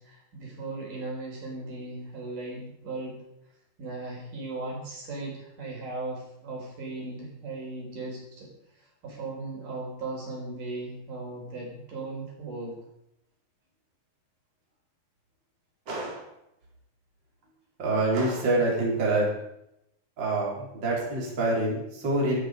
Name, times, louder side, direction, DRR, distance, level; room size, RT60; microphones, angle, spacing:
voice 1, 0.0-3.2 3.8-12.7, right 2 dB, 55° right, -2 dB, 6.0 m, -37 dB
voice 2, 15.9-16.2 17.8-19.3 20.2-22.4, right 2 dB, 30° right, -3 dB, 4.6 m, -26 dB
17.0 x 13.5 x 5.2 m, 0.82 s
omnidirectional pair, 4.4 m